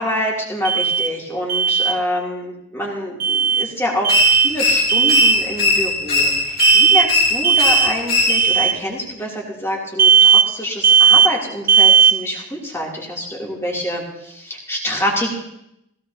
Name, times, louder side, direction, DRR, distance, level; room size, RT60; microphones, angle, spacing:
voice 1, 0.0-15.3, equal, 10° left, -3 dB, 3.0 m, -26 dB
Alarm, 0.6-1.1 1.5-1.9 3.2-3.7 4.0-4.5 4.9-5.4 6.6-7.1 7.4-7.9 8.3-8.7 10.0-10.5 10.8-11.3 11.7-12.2, right 7 dB, 40° right, 0.8 m, -14 dB
sound 1, 4.1-8.7, left 3 dB, 40° left, 2.7 m, -19 dB
17.0 x 16.5 x 2.9 m, 0.79 s
head